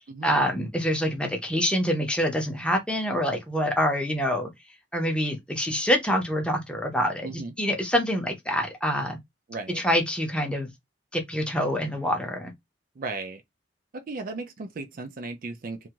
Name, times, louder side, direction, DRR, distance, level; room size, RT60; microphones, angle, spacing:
voice 1, 0.2-4.5 4.9-9.2 9.8-10.7 11.1-12.5, equal, 5° left, 0.7 m, -26 dB
voice 2, 7.2-7.5 9.5-9.8 13.0-13.4 13.9-15.9, right 3 dB, 50° right, 0.4 m, -36 dB
2.6 x 2.3 x 2.9 m
head